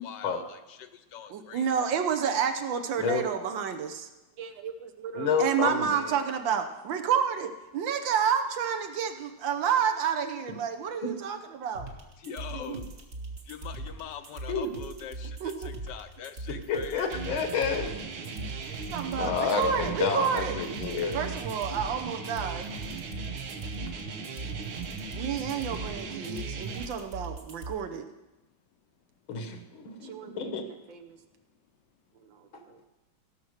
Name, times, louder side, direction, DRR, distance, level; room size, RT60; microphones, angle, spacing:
voice 1, 0.0-1.9 12.2-12.8 13.5-17.0, left 8 dB, 70° left, 9 dB, 1.2 m, -43 dB
voice 2, 1.3-4.1 4.4-11.9 12.5-12.8 14.8-14.9 15.4-15.5 18.9-20.6 21.1-22.7 25.1-28.0 29.5-29.7 30.0-31.2 32.7-32.8, right 7 dB, 75° right, 7 dB, 1.6 m, -30 dB
voice 3, 5.1-6.2 11.0-11.1 12.6-12.8 14.5-14.7 16.7-18.0 19.1-21.2 29.3-30.6 32.5-32.6, left 5 dB, 85° left, 6 dB, 2.1 m, -30 dB
sound 1, 11.7-27.7, right 2 dB, 40° right, 1.6 m, -40 dB
sound 2, 17.1-26.9, right 5 dB, 90° right, 1.9 m, -38 dB
16.5 x 5.9 x 6.5 m, 1.0 s
omnidirectional pair, 2.1 m